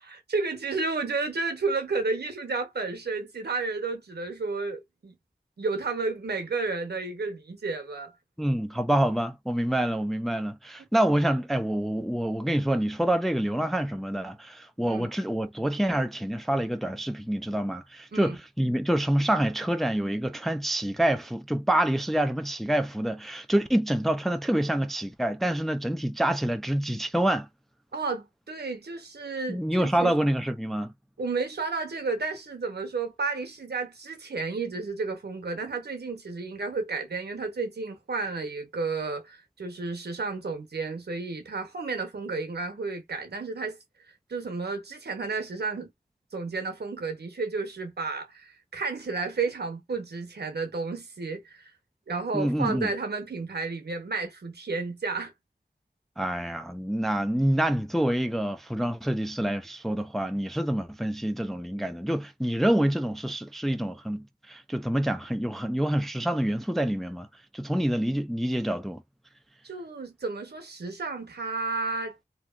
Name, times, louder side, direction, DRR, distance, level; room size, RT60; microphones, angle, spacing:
voice 1, 0.0-5.2 5.6-8.1 14.8-15.1 18.1-18.4 27.9-30.2 31.2-43.8 44.3-45.9 46.3-51.7 52.1-55.3 69.6-72.2, right 4 dB, 70° right, 0.9 m, -32 dB
voice 2, 8.4-27.5 29.5-30.9 52.3-52.9 56.2-67.3 67.5-69.0, right 1 dB, ahead, 0.4 m, -27 dB
2.9 x 2.3 x 2.4 m
cardioid pair, 40°, 18 cm